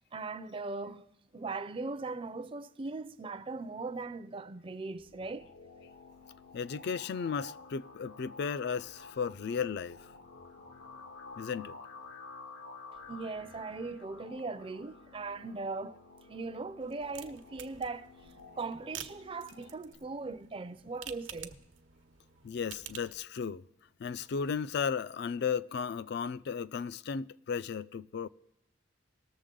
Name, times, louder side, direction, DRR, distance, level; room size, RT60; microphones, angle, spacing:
voice 1, 0.1-1.1 1.3-5.5 13.1-16.0 16.2-18.1 18.6-21.5, right 3 dB, 30° right, 0.4 m, -39 dB
sound 1, 5.0-19.9, left 3 dB, 85° left, 1.2 m, -51 dB
voice 2, 6.5-10.0 11.4-11.8 22.4-23.6 24.0-28.3, left 6 dB, 60° left, 0.4 m, -35 dB
sound 2, 16.8-23.2, right 9 dB, 85° right, 0.8 m, -49 dB
19.0 x 7.0 x 3.8 m
head